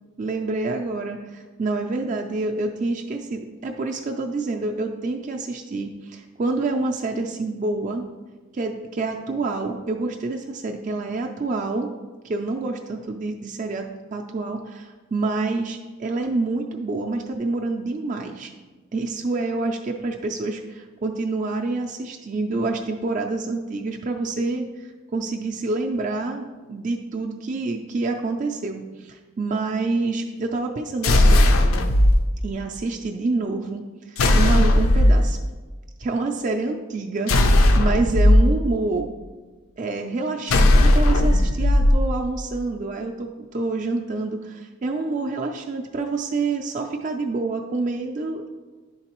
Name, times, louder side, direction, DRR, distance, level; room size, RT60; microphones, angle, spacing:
voice 1, 0.2-8.0 8.5-11.9 12.2-13.8 14.1-18.5 18.9-31.4 32.4-35.4 36.0-39.1 39.8-48.5, right 3 dB, 40° right, 2 dB, 0.4 m, -27 dB
sound 1, 31.0-32.1 34.2-35.2 37.3-38.4 40.5-41.9, left 1 dB, 90° left, 0.5 m, -16 dB
10.5 x 3.9 x 2.9 m, 1.3 s
head